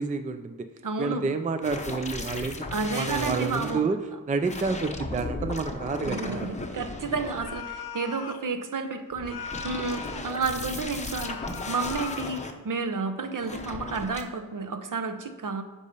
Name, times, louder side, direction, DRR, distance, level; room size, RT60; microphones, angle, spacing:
voice 1, 0.0-0.7 1.0-4.0 4.3-6.5, right 4 dB, 20° right, 8 dB, 0.4 m, -29 dB
voice 2, 0.8-1.2 2.7-3.8 6.0-15.6, right 4 dB, 60° right, 8 dB, 0.8 m, -31 dB
sound 1, 1.6-3.8 4.4-7.8 9.1-12.5 13.4-14.2, left 2 dB, 20° left, 0.7 m, -36 dB
sound 2, 7.4-8.5 9.2-10.4 11.1-12.4, left 7 dB, 85° left, 0.6 m, -39 dB
8.2 x 5.5 x 5.4 m, 1.3 s
wide cardioid pair, 130°, 37 cm